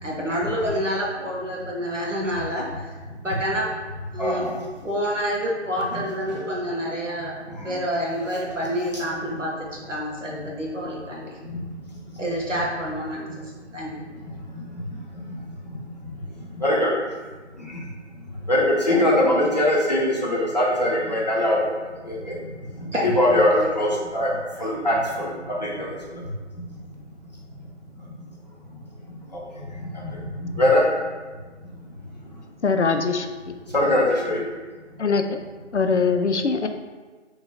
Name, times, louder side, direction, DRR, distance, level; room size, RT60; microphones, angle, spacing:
voice 1, 0.0-2.8 3.2-3.7 4.1-4.5 4.8-7.4 7.6-11.4 12.2-13.4 13.7-13.9 18.9-19.2 22.9-23.2 23.5-23.7 24.6-24.7, equal, 85° right, -3 dB, 1.4 m, -28 dB
voice 2, 4.2-4.5 5.9-6.0 11.5-11.6 16.6-16.9 18.5-21.6 22.1-22.3 23.2-24.3 24.6-25.3 25.6-25.9 30.6-30.8 33.7-34.4, left 1 dB, 35° left, -5 dB, 0.9 m, -21 dB
voice 3, 32.6-33.3 35.0-35.4 35.7-36.7, left 4 dB, 70° left, 7 dB, 0.5 m, -22 dB
3.8 x 3.0 x 4.0 m, 1.3 s
figure-of-eight pair, 165°, 36 cm